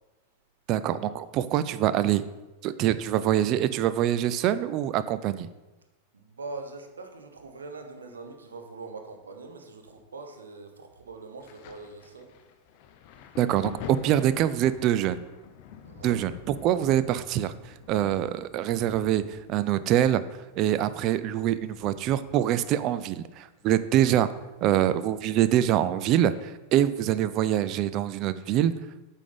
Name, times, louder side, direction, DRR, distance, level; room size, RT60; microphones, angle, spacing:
voice 1, 0.7-2.2 2.6-5.5 13.4-15.2 16.0-20.2 20.6-24.3 24.6-28.8, right 11 dB, 40° right, 14 dB, 0.3 m, -25 dB
voice 2, 6.1-12.4 15.8-16.2, right 3 dB, 70° right, 5 dB, 0.9 m, -42 dB
Thunder, 11.4-24.8 25.0-26.4 27.2-27.4, left 8 dB, 45° left, 0.6 m, -48 dB
8.3 x 3.6 x 5.3 m, 1.1 s
figure-of-eight pair, 90°, 0 cm